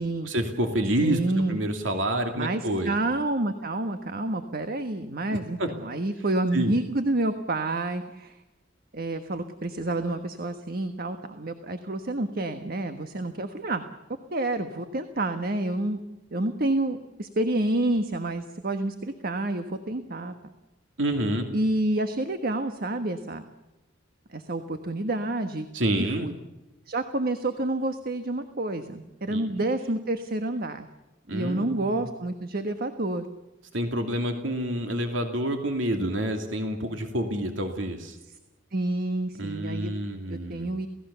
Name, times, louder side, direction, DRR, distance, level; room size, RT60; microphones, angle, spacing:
voice 1, 0.2-3.0 5.3-5.7 6.5-6.7 21.0-21.5 25.7-26.3 29.3-29.5 31.3-32.0 33.7-38.2 39.4-40.7, right 1 dB, 80° right, 4 dB, 2.8 m, -28 dB
voice 2, 1.0-1.6 2.3-8.4 8.9-13.8 14.3-16.0 16.3-20.3 21.5-23.4 24.3-25.7 26.0-26.3 26.9-30.9 31.3-33.3 38.7-39.9 40.3-40.9, right 2 dB, 50° right, 8 dB, 1.4 m, -29 dB
29.0 x 17.5 x 7.0 m, 1.0 s
head